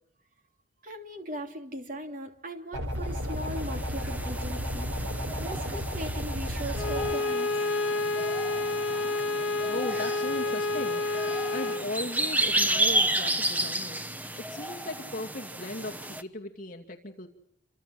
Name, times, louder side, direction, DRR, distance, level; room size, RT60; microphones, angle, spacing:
voice 1, 0.8-5.0 5.4-7.5, right 1 dB, 40° right, 5 dB, 3.1 m, -39 dB
sound 1, 2.7-7.1, equal, 80° right, 4.0 m, -33 dB
sound 2, 3.2-16.2, right 1 dB, 10° right, 1.1 m, -32 dB
Bowed string instrument, 6.7-11.9, left 3 dB, 80° left, 1.0 m, -29 dB
voice 2, 9.6-17.3, left 2 dB, 40° left, 1 dB, 2.4 m, -38 dB
28.5 x 25.5 x 7.8 m, 0.69 s
head